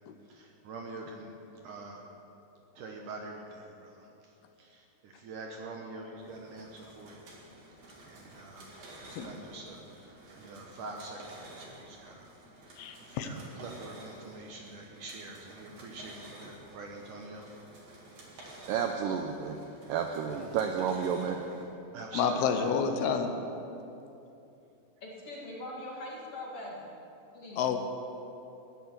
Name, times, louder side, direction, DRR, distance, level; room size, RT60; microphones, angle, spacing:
voice 1, 0.2-1.4 1.6-2.1 2.8-7.5 8.1-12.3 12.6-17.4 18.2-18.4 20.2-20.5 21.9-22.7, right 2 dB, 70° right, 1 dB, 2.2 m, -46 dB
sound 1, 6.2-21.6, right 1 dB, 45° right, 3.1 m, -52 dB
voice 2, 12.8-13.3 22.2-23.3 27.6-27.8, left 6 dB, 75° left, 6 dB, 2.7 m, -29 dB
voice 3, 18.7-19.6 19.9-21.4, right 7 dB, 85° right, 4 dB, 1.9 m, -31 dB
voice 4, 22.1-22.8 25.0-27.0 27.3-27.7, left 1 dB, 45° left, -4 dB, 2.5 m, -41 dB
14.0 x 10.5 x 7.9 m, 2.8 s
omnidirectional pair, 4.7 m